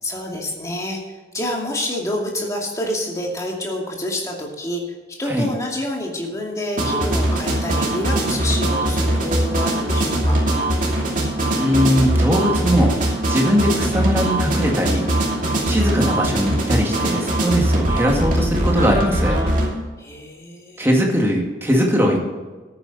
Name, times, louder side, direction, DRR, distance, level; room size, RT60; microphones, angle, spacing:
voice 1, 0.0-10.5 20.0-20.9, left 1 dB, 20° left, -1 dB, 2.3 m, -28 dB
sound 1, 6.8-19.7, right 1 dB, 45° right, 2.7 m, -21 dB
voice 2, 11.6-13.0 13.3-15.1 15.6-19.4 20.8-22.2, equal, 15° right, 0 dB, 2.1 m, -20 dB
13.5 x 9.5 x 4.2 m, 1.3 s
head